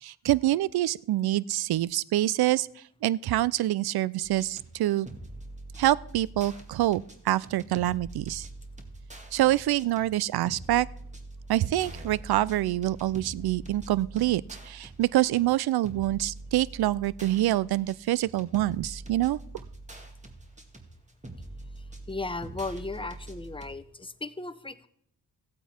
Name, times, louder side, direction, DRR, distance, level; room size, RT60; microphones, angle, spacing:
voice 1, 0.0-2.7 3.0-5.1 5.8-8.5 9.3-10.9 11.5-19.4, right 15 dB, 70° right, 22 dB, 0.5 m, -26 dB
sound 1, 4.2-23.7, right 2 dB, 15° right, 1.9 m, -44 dB
voice 2, 22.1-24.9, left 3 dB, 15° left, 13 dB, 0.8 m, -36 dB
15.0 x 8.1 x 4.3 m, 0.68 s
supercardioid pair, 50°, 40 cm